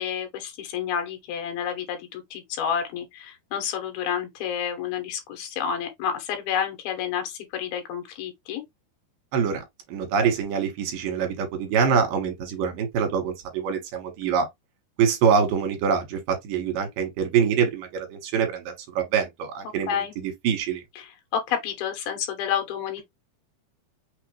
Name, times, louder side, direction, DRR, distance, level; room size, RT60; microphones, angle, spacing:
voice 1, 0.0-8.6 19.9-20.1 21.0-23.0, left 8 dB, 75° left, 3.1 m, -30 dB
voice 2, 9.3-14.5 15.0-19.9 20.2-20.8, right 7 dB, 70° right, 2.8 m, -25 dB
6.3 x 2.5 x 3.1 m
omnidirectional pair, 4.4 m